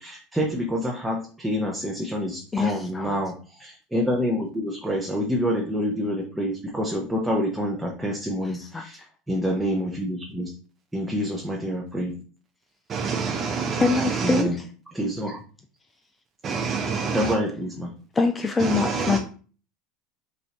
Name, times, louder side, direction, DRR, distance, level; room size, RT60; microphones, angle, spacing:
voice 1, 0.0-10.5 10.9-12.2 14.2-14.6 14.9-15.4 17.0-18.0, equal, 5° right, 0.8 m, -27 dB
voice 2, 2.5-3.2 8.4-8.8 13.7-14.5 18.2-19.2, left 4 dB, 15° left, 0.4 m, -24 dB
voice 3, 12.9-14.4 16.4-17.3 18.6-19.2, right 5 dB, 30° right, 0.6 m, -27 dB
5.5 x 2.6 x 2.9 m
supercardioid pair, 120°, 0 cm